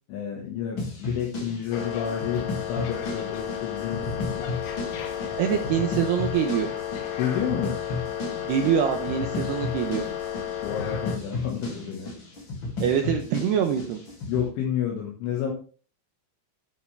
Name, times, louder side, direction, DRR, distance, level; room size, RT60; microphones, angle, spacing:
voice 1, 0.1-4.5 5.5-5.6 7.2-7.8 10.6-12.1 14.3-15.5, left 8 dB, 70° left, -1 dB, 3.9 m, -30 dB
sound 1, 0.8-14.5, left 3 dB, 35° left, 2.1 m, -34 dB
sound 2, 1.7-11.2, left 9 dB, 90° left, 4.5 m, -33 dB
voice 2, 5.4-6.7 8.5-10.1 12.8-14.0, right 8 dB, 80° right, 4 dB, 2.5 m, -24 dB
11.0 x 11.0 x 3.5 m, 0.40 s
omnidirectional pair, 5.9 m